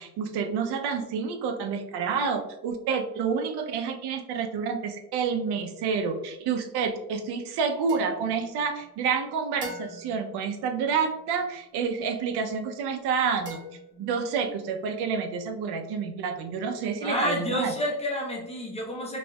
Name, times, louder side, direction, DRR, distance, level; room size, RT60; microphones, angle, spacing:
voice 1, 0.0-13.6 14.0-17.7, right 6 dB, 85° right, 6 dB, 0.7 m, -29 dB
sound 1, 7.9-9.1 9.6-11.4 13.5-14.5, left 1 dB, 30° right, 1.0 m, -43 dB
voice 2, 17.0-19.2, left 1 dB, 15° left, -2 dB, 0.6 m, -29 dB
4.3 x 3.3 x 2.3 m, 0.93 s
cardioid pair, 160°, 38 cm